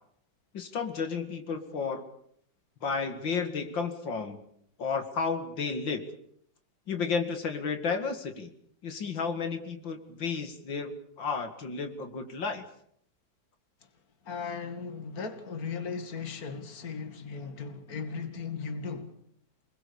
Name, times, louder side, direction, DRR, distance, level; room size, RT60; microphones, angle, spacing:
voice 1, 0.5-2.0 2.8-4.4 4.8-6.0 6.9-8.5 8.8-12.6, left 5 dB, 85° left, 2.9 m, -32 dB
voice 2, 14.2-19.2, left 5 dB, 50° left, 2.6 m, -37 dB
28.0 x 21.0 x 7.1 m
omnidirectional pair, 2.0 m